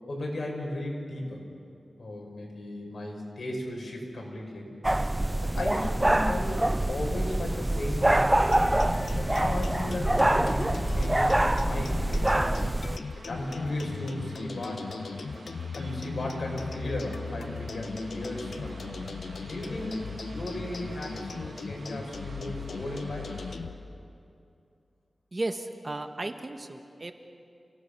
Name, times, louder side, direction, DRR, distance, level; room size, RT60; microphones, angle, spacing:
voice 1, 0.1-1.4 2.0-4.7 5.4-8.6 9.2-12.6 13.2-14.9 15.7-19.0 19.4-23.3, left 1 dB, 65° left, -1 dB, 5.6 m, -36 dB
sound 1, 4.8-13.0, right 1 dB, 15° right, 0.4 m, -25 dB
sound 2, 8.0-23.6, right 3 dB, 75° right, 2.3 m, -51 dB
sound 3, 8.4-23.7, left 4 dB, 85° left, 1.1 m, -38 dB
voice 2, 25.3-27.1, right 2 dB, 40° right, 7 dB, 1.3 m, -34 dB
29.5 x 17.5 x 6.7 m, 2.5 s
wide cardioid pair, 70°, 0 cm